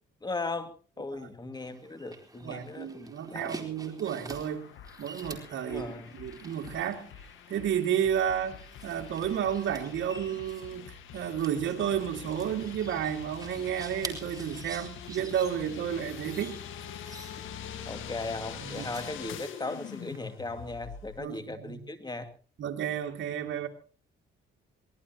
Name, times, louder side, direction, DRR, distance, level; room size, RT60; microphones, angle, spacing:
voice 1, 0.2-3.6 5.7-6.1 17.4-17.5 17.9-22.3, left 3 dB, 20° left, 2.3 m, -38 dB
sound 1, 1.5-20.2, right 3 dB, 20° right, 4.0 m, -48 dB
voice 2, 2.4-4.6 5.0-7.1 7.5-16.6 18.6-18.8 21.2-21.9 22.6-23.7, right 9 dB, 70° right, 2.4 m, -32 dB
sound 2, 4.3-21.2, left 8 dB, 80° left, 1.7 m, -45 dB
24.0 x 19.0 x 3.0 m
cardioid pair, 90°, 20 cm